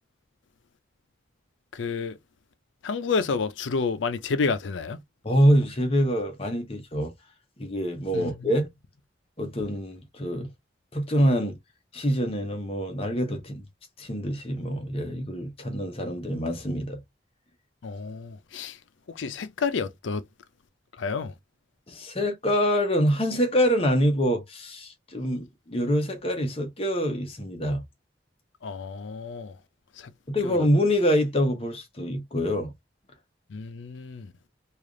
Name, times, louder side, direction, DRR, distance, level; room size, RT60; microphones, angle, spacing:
voice 1, 1.7-2.2 2.8-5.0 8.1-8.3 17.8-18.8 19.2-20.2 21.0-21.3 28.6-29.5 30.4-30.6 33.5-34.3, left 4 dB, 85° left, 0.5 m, -29 dB
voice 2, 5.2-7.1 7.6-8.7 9.4-10.5 10.9-11.6 11.9-13.6 14.0-17.0 21.9-27.8 30.3-32.7, equal, 30° left, 0.8 m, -25 dB
3.3 x 2.4 x 3.7 m
head